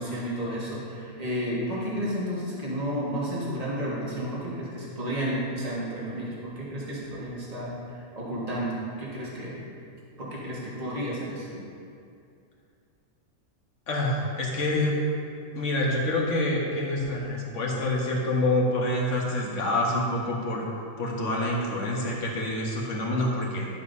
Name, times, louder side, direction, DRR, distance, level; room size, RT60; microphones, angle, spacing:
voice 1, 0.0-9.6 10.2-11.6, equal, 30° right, -6 dB, 1.7 m, -32 dB
voice 2, 13.9-15.0 15.5-20.7 21.0-23.7, left 1 dB, 60° left, -2 dB, 1.5 m, -27 dB
11.5 x 7.3 x 2.7 m, 2.5 s
omnidirectional pair, 1.5 m